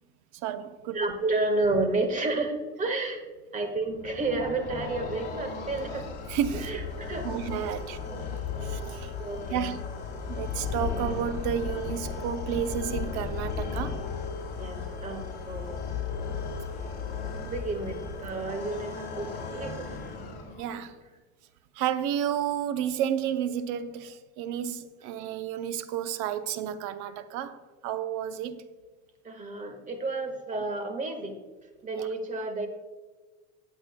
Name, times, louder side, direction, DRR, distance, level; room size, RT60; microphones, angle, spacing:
voice 1, 0.3-0.9 6.3-6.8 7.2-8.0 8.6-9.1 9.5-9.8 10.3-14.0 20.6-21.0 21.7-28.6 32.0-32.1, right 9 dB, 60° right, 0.8 m, -31 dB
voice 2, 0.9-3.2 3.5-6.1 6.5-7.3 7.6-7.7 8.1-8.3 9.2-9.7 14.6-15.8 17.5-20.1 29.2-31.4 31.8-32.7, right 2 dB, 20° right, 1.6 m, -31 dB
sound 1, 3.8-20.8, left 5 dB, 30° left, 2.4 m, -35 dB
21.5 x 8.1 x 2.2 m
supercardioid pair, 125°, 34 cm